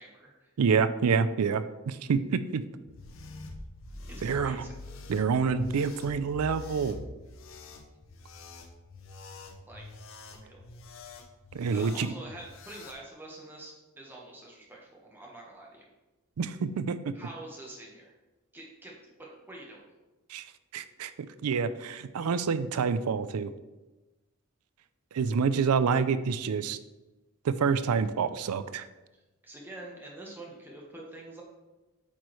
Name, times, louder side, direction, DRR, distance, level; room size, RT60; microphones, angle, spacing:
voice 1, 0.0-0.5 4.1-4.8 9.7-9.8 10.2-10.6 11.7-15.9 17.1-18.1 18.5-19.9 29.1-31.4, right 2 dB, 10° right, -3 dB, 1.2 m, -46 dB
voice 2, 0.6-2.6 4.2-4.6 5.1-7.0 11.5-12.1 16.4-17.1 20.3-20.4 20.7-21.1 21.4-23.5 25.1-26.8 27.4-28.9, right 5 dB, 90° right, 13 dB, 0.4 m, -27 dB
sound 1, 2.8-13.0, left 2 dB, 60° left, 0.6 m, -46 dB
8.4 x 4.8 x 3.1 m, 1.1 s
head